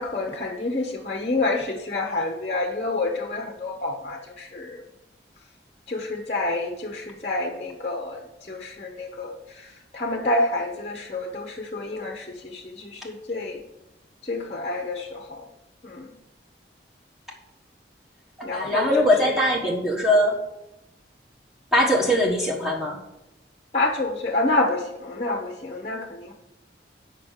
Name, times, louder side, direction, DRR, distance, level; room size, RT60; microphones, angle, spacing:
voice 1, 0.0-4.8 5.9-8.2 8.5-13.6 14.2-15.4 15.8-16.1 18.4-19.1 23.7-26.3, left 2 dB, 35° left, 2 dB, 0.8 m, -28 dB
voice 2, 18.4-20.4 21.7-23.0, left 1 dB, ahead, -3 dB, 1.2 m, -21 dB
8.4 x 5.3 x 6.5 m, 0.91 s
head